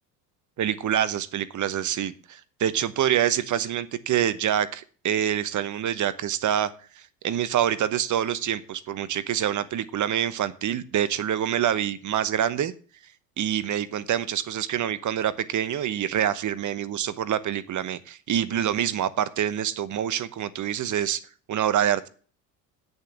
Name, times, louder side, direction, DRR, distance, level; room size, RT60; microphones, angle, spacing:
voice 1, 0.6-6.7 7.2-12.7 13.4-21.2 21.5-22.1, right 10 dB, 40° right, 15 dB, 1.1 m, -26 dB
8.2 x 6.9 x 8.0 m, 0.40 s
hypercardioid pair, 75°, 48 cm